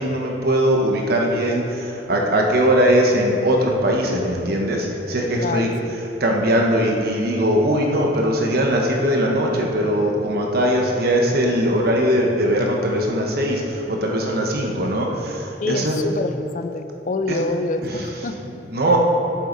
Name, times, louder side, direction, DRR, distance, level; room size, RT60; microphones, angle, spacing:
voice 1, 0.0-5.7 6.2-16.0 17.3-17.4 17.8-18.1 18.7-19.0, equal, 55° right, 0 dB, 1.3 m, -20 dB
voice 2, 5.4-6.0 15.6-18.6, left 2 dB, 45° left, 9 dB, 0.5 m, -26 dB
13.0 x 7.6 x 4.1 m, 2.9 s
head